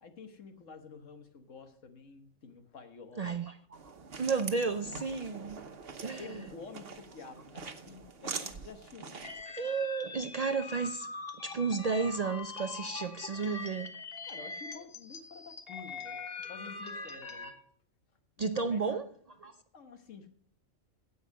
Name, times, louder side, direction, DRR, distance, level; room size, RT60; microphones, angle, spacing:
voice 1, 0.0-3.4 4.3-5.0 6.2-9.1 14.3-16.2 16.5-17.6 18.4-18.8 19.7-20.3, left 5 dB, 70° left, 1.6 m, -50 dB
voice 2, 3.2-3.6 3.8-5.7 6.0-6.4 9.6-11.1 11.4-14.0 18.4-19.0 19.4-19.6, right 4 dB, 85° right, 0.3 m, -32 dB
sound 1, 3.7-9.4, right 5 dB, 50° right, 1.2 m, -44 dB
sound 2, 9.2-17.5, left 3 dB, 45° left, 1.5 m, -43 dB
16.0 x 5.6 x 6.4 m
omnidirectional pair, 1.4 m